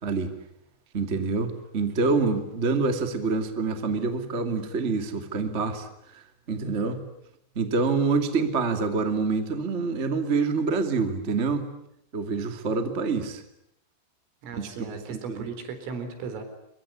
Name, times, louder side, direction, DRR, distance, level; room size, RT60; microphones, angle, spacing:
voice 1, 0.0-0.3 0.9-7.0 7.5-11.7 12.1-13.4 14.6-15.5, right 4 dB, 30° right, 7 dB, 1.3 m, -26 dB
voice 2, 14.4-16.4, right 5 dB, 85° right, 8 dB, 6.5 m, -36 dB
25.5 x 23.5 x 9.9 m, 0.77 s
omnidirectional pair, 5.7 m